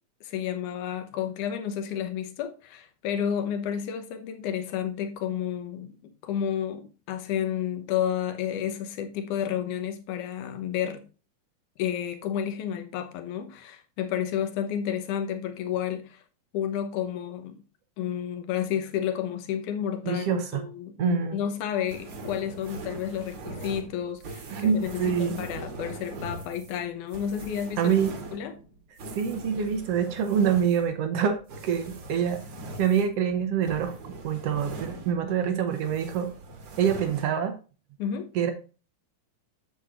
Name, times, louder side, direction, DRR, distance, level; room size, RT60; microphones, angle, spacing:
voice 1, 0.2-5.9 6.2-11.0 11.8-16.2 16.5-17.6 18.0-27.9 28.3-28.5 38.0-38.3, left 9 dB, 75° left, 2.4 m, -31 dB
voice 2, 20.0-20.6 21.0-21.4 24.5-25.4 27.8-28.1 29.2-32.4 32.8-36.3 36.8-37.6 38.3-38.5, right 7 dB, 70° right, 1.5 m, -26 dB
sound 1, 21.9-35.4 35.7-37.2, right 2 dB, 50° right, 1.8 m, -41 dB
8.3 x 7.5 x 2.5 m
omnidirectional pair, 3.6 m